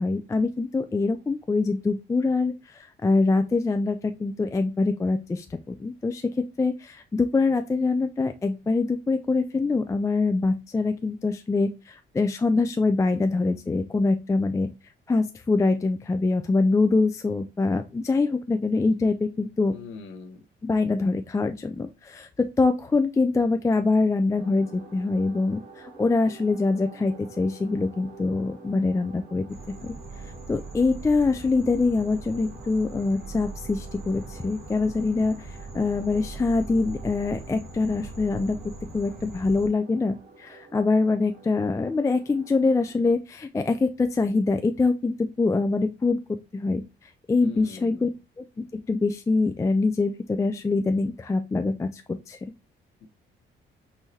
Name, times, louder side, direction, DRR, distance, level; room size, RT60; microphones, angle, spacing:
voice 1, 0.0-14.7 15.1-19.7 20.6-29.5 29.8-29.9 30.5-48.1 48.4-52.5, left 3 dB, 15° left, 7 dB, 0.3 m, -24 dB
voice 2, 19.7-20.4 47.4-48.1 53.0-53.1, left 4 dB, 85° left, 4 dB, 1.1 m, -42 dB
sound 1, 24.3-42.9, right 4 dB, 70° right, 1.6 m, -49 dB
sound 2, 29.5-39.7, right 3 dB, 55° right, 2.1 m, -41 dB
5.6 x 2.6 x 3.1 m, 0.27 s
cardioid pair, 90°, 20 cm